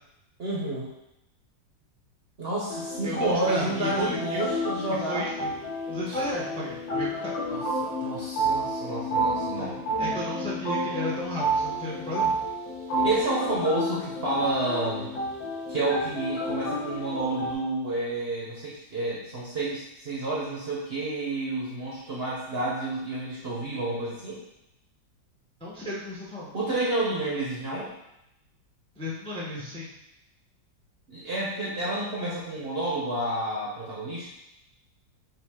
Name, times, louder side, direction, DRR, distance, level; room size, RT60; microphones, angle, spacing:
voice 1, 0.4-0.9 2.4-5.3 6.1-6.2 7.5-9.8 12.9-15.1 15.7-24.4 26.5-27.9 31.1-34.3, right 2 dB, 50° right, -5 dB, 0.8 m, -30 dB
sound 1, 2.7-17.5, right 1 dB, 55° left, 1.3 m, -30 dB
voice 2, 3.0-4.4 5.1-5.6 5.9-7.3 9.6-12.3 25.6-26.5 29.0-29.9, left 1 dB, 10° left, -6 dB, 0.4 m, -34 dB
5.8 x 2.5 x 3.6 m, 0.86 s
omnidirectional pair, 1.9 m